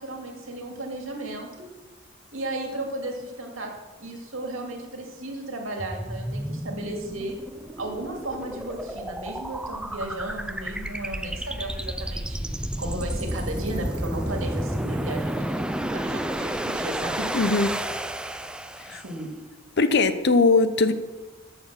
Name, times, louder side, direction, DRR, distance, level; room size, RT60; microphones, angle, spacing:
voice 1, 0.0-1.7 2.3-3.7 4.0-7.4 7.8-12.5 12.8-17.3 19.0-19.3, right 1 dB, 75° right, 2 dB, 2.3 m, -34 dB
sound 1, 5.8-19.2, right 1 dB, 5° right, 0.4 m, -31 dB
voice 2, 17.3-17.7 18.9-19.0 19.8-20.9, left 3 dB, 55° left, 11 dB, 0.8 m, -20 dB
13.5 x 7.1 x 6.0 m, 1.2 s
head